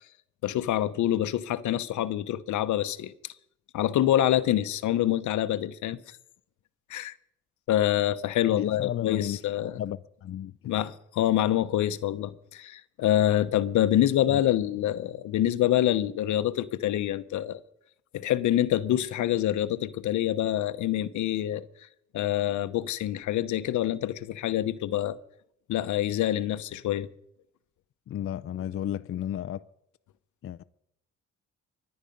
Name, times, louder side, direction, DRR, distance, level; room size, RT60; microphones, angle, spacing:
voice 1, 0.4-3.3 3.7-6.2 6.9-7.1 7.7-9.8 10.6-17.6 18.1-21.7 22.1-25.2 25.7-27.1, left 12 dB, 75° left, 0.9 m, -26 dB
voice 2, 8.5-9.4 9.6-10.5 14.3-14.4 28.1-29.6 30.4-30.6, left 11 dB, 45° left, 0.5 m, -33 dB
24.0 x 9.8 x 5.3 m
cardioid pair, 90°, 30 cm